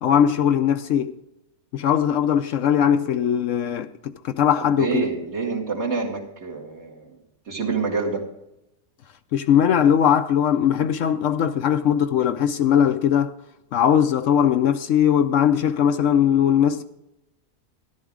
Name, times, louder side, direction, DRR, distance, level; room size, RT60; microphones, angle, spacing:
voice 1, 0.0-1.1 1.7-5.1 9.3-13.3 13.7-16.8, left 9 dB, 70° left, 0.9 m, -20 dB
voice 2, 4.8-7.1 7.5-8.3, right 4 dB, 50° right, 2.4 m, -27 dB
13.5 x 11.5 x 3.6 m
omnidirectional pair, 1.5 m